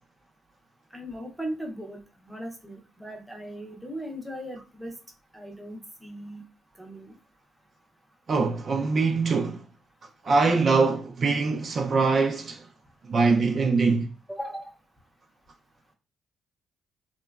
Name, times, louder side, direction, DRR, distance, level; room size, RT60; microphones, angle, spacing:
voice 1, 0.9-4.9 5.3-6.4 6.8-7.1 14.3-14.7, equal, 5° right, 0.6 m, -38 dB
voice 2, 8.3-9.6 10.2-12.6 13.1-14.1, right 4 dB, 45° right, 0.3 m, -23 dB
2.9 x 2.1 x 2.3 m
cardioid pair, 90°, 0 cm